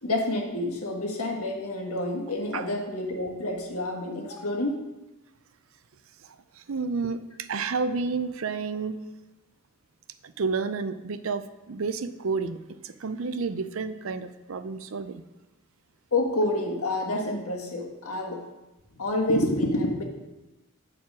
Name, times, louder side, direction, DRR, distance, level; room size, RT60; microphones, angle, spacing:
voice 1, 0.0-4.8 16.1-18.4 18.9-20.0, left 1 dB, 85° left, 1 dB, 1.6 m, -28 dB
voice 2, 6.2-9.0 10.2-15.2, right 4 dB, 65° right, 11 dB, 0.5 m, -31 dB
8.7 x 4.9 x 6.1 m, 1.0 s
head